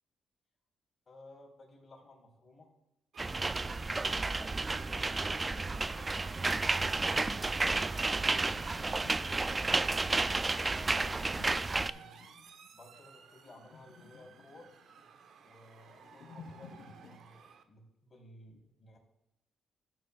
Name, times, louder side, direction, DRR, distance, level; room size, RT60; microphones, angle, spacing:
voice 1, 1.1-2.7 3.2-4.4 4.7-6.5 6.9-7.6 9.5-12.2 12.7-14.7 15.4-19.0, left 1 dB, 35° left, 0 dB, 3.3 m, -55 dB
Motor vehicle (road) / Siren, 3.1-17.6, right 7 dB, 70° right, 0.8 m, -54 dB
sound 1, 3.2-11.9, right 3 dB, 25° right, 0.3 m, -31 dB
sound 2, 8.3-17.2, left 5 dB, 70° left, 0.9 m, -55 dB
14.0 x 9.2 x 2.3 m, 0.90 s
cardioid pair, 90°, 0 cm